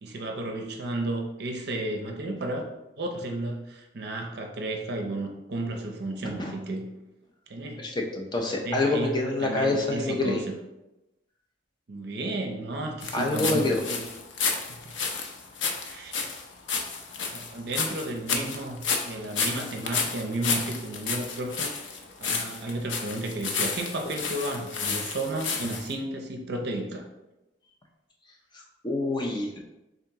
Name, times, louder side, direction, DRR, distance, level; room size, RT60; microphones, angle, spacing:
voice 1, 0.0-2.6 3.0-6.8 7.5-7.9 8.6-10.4 11.9-14.0 14.7-14.9 15.8-16.2 17.3-21.7 22.2-27.1, right 2 dB, 60° right, 2 dB, 0.5 m, -33 dB
voice 2, 7.8-10.4 13.1-13.8 28.5-29.6, left 2 dB, 25° left, 0 dB, 0.5 m, -27 dB
sound 1, 13.0-25.9, left 5 dB, 90° left, 0.6 m, -31 dB
3.6 x 2.9 x 3.5 m, 0.99 s
head